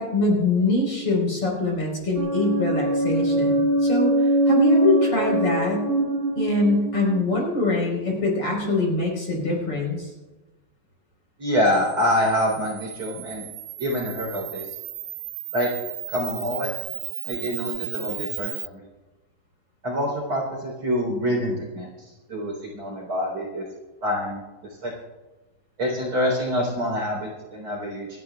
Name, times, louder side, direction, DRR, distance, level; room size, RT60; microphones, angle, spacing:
voice 1, 0.0-4.1 4.5-5.8 6.4-10.1, left 2 dB, 35° left, -2 dB, 5.0 m, -23 dB
sound 1, 2.2-8.0, right 1 dB, 70° right, 3.6 m, -22 dB
voice 2, 11.4-13.4 13.8-14.7 15.5-15.7 16.1-16.7 17.3-18.8 19.8-21.9 22.3-23.6 24.0-24.4 24.8-24.9 25.8-28.1, equal, 35° right, -2 dB, 4.2 m, -26 dB
Camera, 11.7-18.7, right 15 dB, 85° right, 2.7 m, -35 dB
28.5 x 12.0 x 2.3 m, 1.1 s
omnidirectional pair, 4.8 m